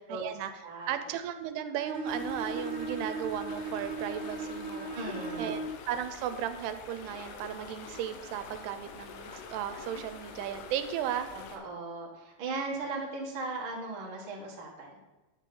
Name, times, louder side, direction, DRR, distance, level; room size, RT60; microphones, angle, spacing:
voice 1, 0.1-0.5 0.9-4.9 5.4-5.6 5.9-11.3, right 10 dB, 90° right, 10 dB, 2.7 m, -35 dB
voice 2, 0.6-1.0 4.9-5.6 11.3-15.1, right 3 dB, 50° right, -2 dB, 1.5 m, -38 dB
Bowed string instrument, 1.7-5.8, right 3 dB, 75° right, 1.8 m, -37 dB
sound 1, 2.1-11.6, left 5 dB, 85° left, 2.8 m, -46 dB
9.6 x 3.7 x 6.8 m, 1.1 s
omnidirectional pair, 4.6 m